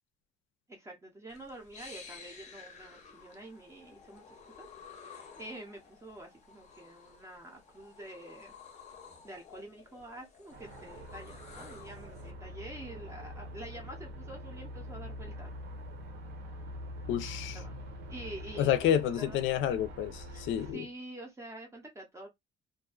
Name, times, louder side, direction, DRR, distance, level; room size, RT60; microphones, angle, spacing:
voice 1, 0.7-4.2 4.6-4.7 5.0-8.6 9.2-15.5 17.4-17.7 18.1-19.4 20.3-22.3, right 1 dB, 15° right, 0.5 m, -47 dB
sound 1, 1.3-12.3, left 6 dB, 35° left, 0.6 m, -53 dB
sound 2, 10.5-20.7, equal, 60° right, 0.8 m, -44 dB
voice 2, 17.1-17.6 18.6-20.8, left 10 dB, 85° left, 0.4 m, -29 dB
2.4 x 2.2 x 2.3 m
cardioid pair, 175°, 19 cm